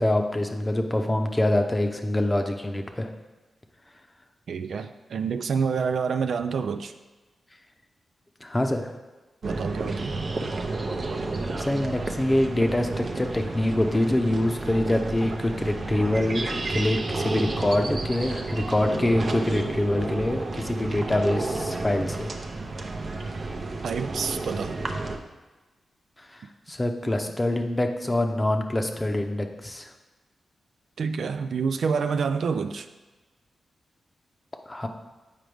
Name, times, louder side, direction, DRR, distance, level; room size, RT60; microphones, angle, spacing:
voice 1, 0.0-3.1 8.4-8.9 11.6-22.3 26.2-29.9 34.7-34.9, left 1 dB, 20° left, 5 dB, 0.7 m, -25 dB
voice 2, 4.5-6.9 9.4-10.2 23.8-24.8 31.0-32.9, right 5 dB, 75° right, 8 dB, 0.3 m, -28 dB
sound 1, 9.4-25.2, right 3 dB, 50° right, 0.7 m, -31 dB
7.7 x 4.9 x 3.4 m, 1.2 s
cardioid pair, 70°, 0 cm